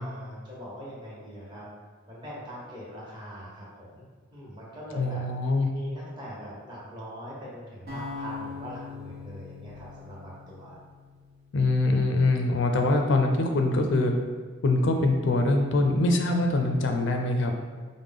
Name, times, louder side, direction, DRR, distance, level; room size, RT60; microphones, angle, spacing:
voice 1, 0.0-1.6 2.1-10.8, equal, 25° right, -7 dB, 1.1 m, -42 dB
voice 2, 5.0-5.7 11.5-14.1 14.6-17.5, left 2 dB, 65° left, 4 dB, 0.4 m, -23 dB
sound 1, 7.9-12.0, left 4 dB, 50° right, 1.1 m, -42 dB
4.9 x 2.1 x 3.5 m, 1.5 s
head